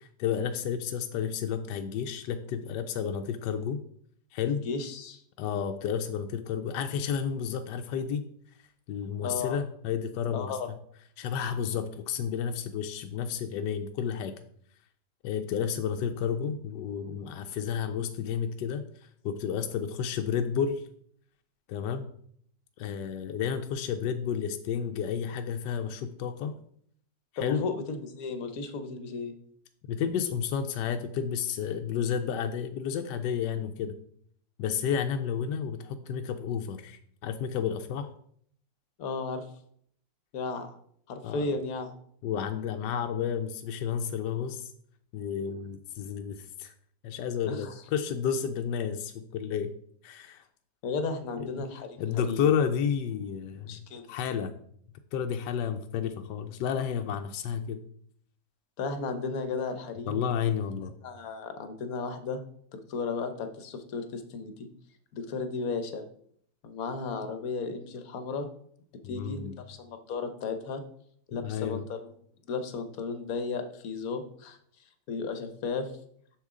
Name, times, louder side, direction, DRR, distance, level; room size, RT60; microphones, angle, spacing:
voice 1, 0.0-3.8 4.3-4.7 5.4-8.2 8.9-10.8 11.2-14.4 15.2-18.8 19.2-20.8 21.7-22.1 22.8-26.5 27.3-27.6 29.9-33.9 34.6-38.1 41.2-41.5 42.2-44.7 45.1-46.7 47.0-49.7 50.0-50.4 51.4-51.6 52.0-53.8 54.1-54.5 55.1-57.8 60.1-60.9 69.0-69.6 71.4-71.8, left 7 dB, 75° left, 6 dB, 1.2 m, -31 dB
voice 2, 4.6-5.2 9.2-9.6 10.3-10.7 27.4-29.3 39.0-39.5 40.3-40.8 41.1-41.9 47.4-47.7 50.8-52.5 53.6-54.0 58.8-60.2 61.0-62.4 62.7-64.7 65.1-66.0 66.6-68.5 69.1-70.8 71.3-72.1 72.5-74.6 75.1-75.9, left 4 dB, 60° left, 8 dB, 1.2 m, -34 dB
7.3 x 6.4 x 3.7 m, 0.63 s
omnidirectional pair, 2.0 m